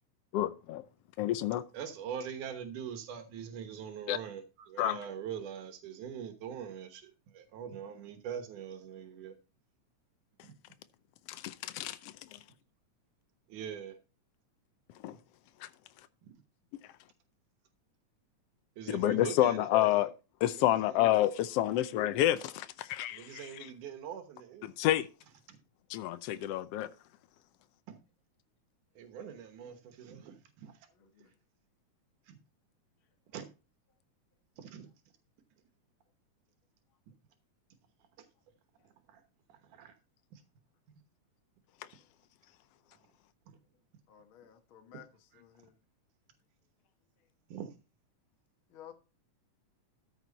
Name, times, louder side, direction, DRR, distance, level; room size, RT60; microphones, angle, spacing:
voice 1, 0.3-0.8 1.2-1.6 4.1-4.2 4.8-5.0 11.3-12.1 15.0-15.1 15.6-15.7 18.9-20.1 20.4-23.3 24.8-25.1 25.9-26.9, left 13 dB, 85° left, 1.4 m, -29 dB
voice 2, 1.7-9.4 10.4-10.5 13.5-14.0 16.2-16.3 18.8-20.1 20.5-21.1 21.6-21.8 23.1-24.7 25.5-25.6 27.9-28.0 29.0-30.9 31.2-31.3 32.2-32.4 33.3-33.5 34.6-34.9 38.2-38.3 38.8-39.2 39.5-40.0 40.3-40.4 43.5-43.6 45.3-45.4 47.5-47.7, right 8 dB, 85° right, 2.7 m, -43 dB
voice 3, 31.0-31.3 44.1-45.1 45.4-45.7 48.7-48.9, left 10 dB, 55° left, 1.7 m, -54 dB
13.5 x 6.2 x 4.0 m
omnidirectional pair, 3.5 m